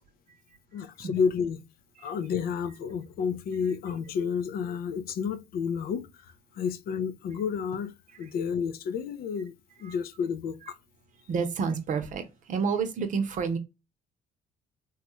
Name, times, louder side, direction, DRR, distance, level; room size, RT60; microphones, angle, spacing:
voice 1, 0.7-1.6 2.0-6.1 6.5-10.7, left 6 dB, 65° left, 0.5 m, -31 dB
voice 2, 11.3-13.6, right 5 dB, 50° right, 0.7 m, -29 dB
3.0 x 2.3 x 2.9 m
cardioid pair, 110°, 17 cm